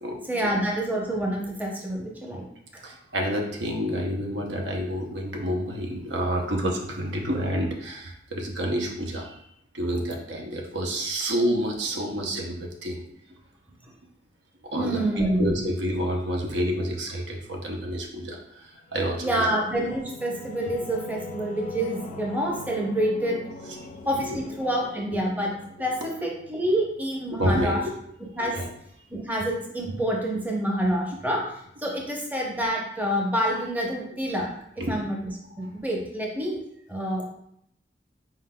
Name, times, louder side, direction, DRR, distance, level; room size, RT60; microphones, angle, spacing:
voice 1, 0.3-2.5 2.7-2.8 14.7-15.5 19.2-23.4 24.1-25.5 25.8-27.8 28.4-28.6 29.1-31.4 31.8-34.5 34.9-35.2 35.6-36.6 36.9-37.2, right 1 dB, 10° right, -2 dB, 0.7 m, -27 dB
voice 2, 2.8-9.4 9.7-13.0 14.7-19.5 21.9-22.0 24.2-24.4 27.4-27.7 28.5-28.7 34.8-35.0 35.6-35.7, equal, 85° right, 1 dB, 0.7 m, -29 dB
Singing / Musical instrument, 18.7-27.9, left 2 dB, 45° left, 0.3 m, -43 dB
4.5 x 3.8 x 2.2 m, 0.73 s
head